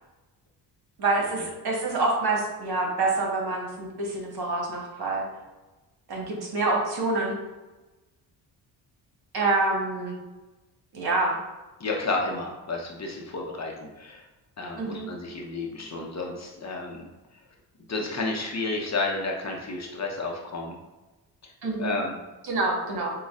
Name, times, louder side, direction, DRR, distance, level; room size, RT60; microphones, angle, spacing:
voice 1, 1.0-5.3 6.1-7.4 9.3-10.2 10.9-11.4 14.8-15.0 21.6-21.9 22.4-23.1, right 3 dB, 55° right, -1 dB, 1.4 m, -26 dB
voice 2, 11.8-14.3 14.6-17.1 17.9-20.7 21.8-22.1, left 3 dB, 35° left, 0 dB, 0.8 m, -31 dB
6.2 x 2.4 x 2.4 m, 1.1 s
supercardioid pair, 60°, 46 cm